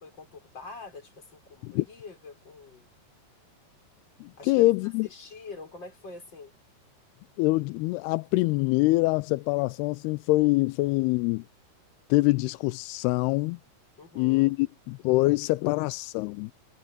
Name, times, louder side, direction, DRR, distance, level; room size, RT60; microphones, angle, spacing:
voice 1, 0.0-2.9 4.4-4.7 5.0-6.5 14.0-14.6, left 3 dB, 30° left, 5.5 m, -45 dB
voice 2, 4.2-5.1 7.4-11.5 12.1-13.6 14.2-16.5, left 21 dB, 90° left, 2.6 m, -25 dB
omnidirectional pair, 4.5 m